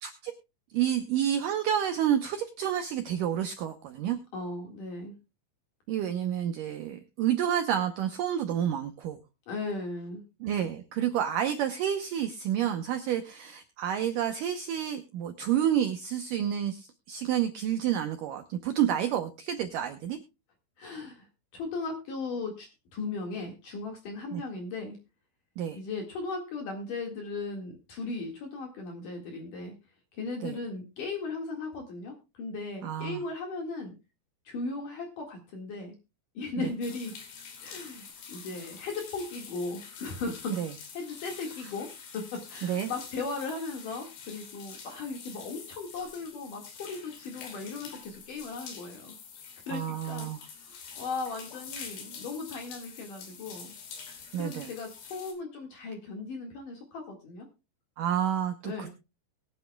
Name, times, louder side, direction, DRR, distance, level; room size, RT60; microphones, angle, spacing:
voice 1, 0.0-0.3 0.7-4.2 5.9-9.2 10.4-20.2 24.3-24.4 25.6-25.8 30.4-30.6 32.8-33.2 40.6-40.7 42.6-42.9 49.7-50.4 54.3-54.7 58.0-58.9, right 10 dB, 75° right, 7 dB, 2.0 m, -29 dB
voice 2, 4.3-5.1 9.5-10.2 20.8-21.3 21.5-25.0 25.7-29.7 30.1-34.0 34.4-35.9 36.3-37.1 37.6-40.5 40.9-41.9 42.1-49.2 49.7-53.7 54.4-57.5 58.6-58.9, left 3 dB, 55° left, 2 dB, 3.2 m, -37 dB
sound 1, 36.8-55.3, left 6 dB, 75° left, 4.6 m, -46 dB
22.0 x 9.5 x 2.3 m, 0.28 s
omnidirectional pair, 4.8 m